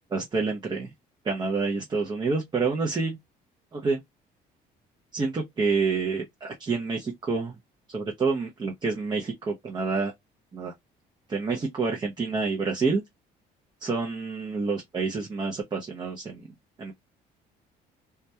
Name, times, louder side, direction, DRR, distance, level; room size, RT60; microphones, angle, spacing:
voice 1, 0.1-0.9 1.2-3.2 3.7-4.0 5.1-7.6 7.9-10.1 10.5-10.7 11.3-13.0 13.8-16.5 16.8-16.9, right 4 dB, 25° right, 0.5 m, -28 dB
2.2 x 2.1 x 2.7 m
cardioid pair, 110°, 17 cm